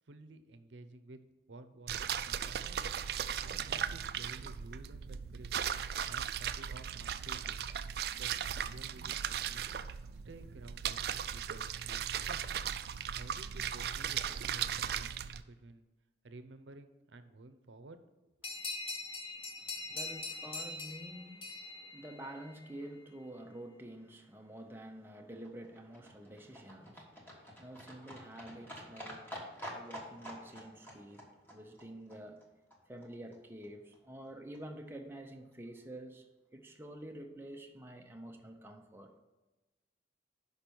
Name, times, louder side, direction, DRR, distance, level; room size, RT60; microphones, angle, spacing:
voice 1, 0.1-1.2 1.5-2.9 3.4-5.5 6.1-7.6 8.1-9.6 10.2-11.0 11.3-12.4 13.1-15.8 16.2-18.0, right 2 dB, 85° right, 10 dB, 0.7 m, -53 dB
sound 1, 1.9-15.4, right 8 dB, 55° right, 0.3 m, -37 dB
sound 2, 18.4-22.7, left 3 dB, 30° left, 0.8 m, -42 dB
voice 2, 18.4-32.4 32.9-39.2, right 1 dB, 10° right, 3 dB, 0.6 m, -49 dB
Livestock farm animals working animals, 24.8-33.1 33.3-33.4 33.6-33.7 33.9-34.0 34.2-34.3 34.5-34.6 34.9-35.0 35.2-35.3 35.5-35.6, equal, 10° left, 1.3 m, -49 dB
6.0 x 5.3 x 6.9 m, 1.1 s
head